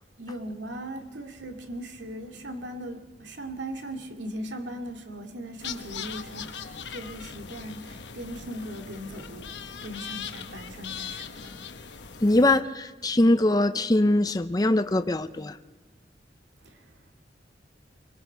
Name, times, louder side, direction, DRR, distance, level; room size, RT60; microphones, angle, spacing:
voice 1, 0.2-11.5, right 1 dB, 90° right, 2.3 m, -39 dB
sound 1, 5.6-12.6, left 7 dB, 75° left, 1.1 m, -40 dB
voice 2, 12.2-15.6, left 1 dB, 20° left, 0.6 m, -22 dB
25.5 x 22.5 x 4.6 m
head